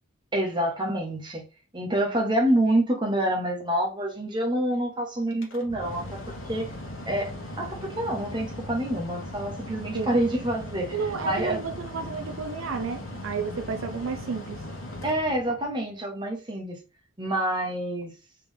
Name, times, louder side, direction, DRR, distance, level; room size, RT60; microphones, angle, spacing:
voice 1, 0.3-1.4 1.7-6.2 6.5-6.7 7.1-7.3 7.6-11.0 11.2-11.6 15.0-16.8 17.2-18.1, right 1 dB, 20° right, 1.1 m, -27 dB
Mechanical fan, 5.3-15.8, left 1 dB, 90° left, 1.3 m, -39 dB
voice 2, 10.9-14.6, right 5 dB, 75° right, 0.5 m, -32 dB
3.7 x 3.4 x 3.5 m
head